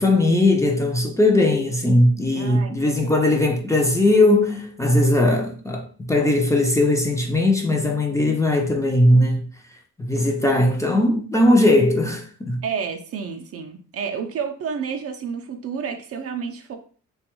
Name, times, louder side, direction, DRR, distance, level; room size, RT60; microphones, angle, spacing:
voice 1, 0.0-9.5 10.0-12.6, left 1 dB, 10° left, 0.5 m, -19 dB
voice 2, 2.3-3.1 12.6-16.8, right 6 dB, 50° right, 0.5 m, -30 dB
2.9 x 2.3 x 3.0 m
cardioid pair, 90°, 30 cm